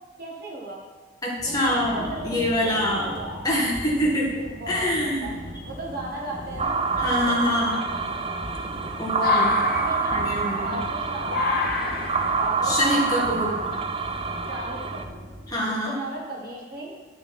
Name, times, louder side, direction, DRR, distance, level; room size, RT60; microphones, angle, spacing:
voice 1, 0.2-0.8 1.5-1.6 1.9-3.4 4.3-5.4 5.7-8.4 9.6-13.7 14.5-15.3 15.7-17.0, right 1 dB, 45° right, -3 dB, 1.8 m, -37 dB
voice 2, 1.2-3.1 3.4-4.3 4.7-5.3 7.0-7.8 9.0-9.5 10.1-10.8 12.6-13.5 15.5-15.9, left 1 dB, 20° left, -5 dB, 2.0 m, -25 dB
sound 1, 1.4-15.5, equal, 65° right, 2.1 m, -40 dB
sound 2, 4.6-5.2 5.9-6.0 6.5-14.5, left 4 dB, 45° left, 1.0 m, -29 dB
sound 3, 6.6-15.0, right 5 dB, 25° right, 0.4 m, -27 dB
11.0 x 6.9 x 4.4 m, 1.3 s
head